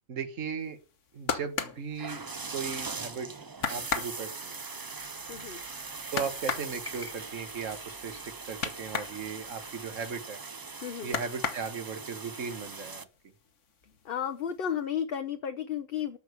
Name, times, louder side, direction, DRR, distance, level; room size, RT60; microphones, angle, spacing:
voice 1, 0.1-0.8 1.1-2.2 2.5-3.3 3.7-4.6 6.1-10.4 11.0-13.1, right 6 dB, 70° right, 8 dB, 1.8 m, -37 dB
sound 1, 0.8-2.8 3.2-3.3 3.6-9.2 9.5-10.6 11.0-12.1 12.5-13.2 13.4-14.1 14.5-14.6, left 6 dB, 70° left, 1.5 m, -35 dB
sound 2, 1.9-13.0, right 4 dB, 35° right, 0.3 m, -41 dB
sound 3, 5.0-10.2, left 2 dB, 10° right, 1.8 m, -53 dB
voice 2, 5.3-5.6 10.8-11.1 14.0-16.2, left 8 dB, 50° left, 7 dB, 0.9 m, -33 dB
13.0 x 4.9 x 8.1 m, 0.37 s
omnidirectional pair, 1.4 m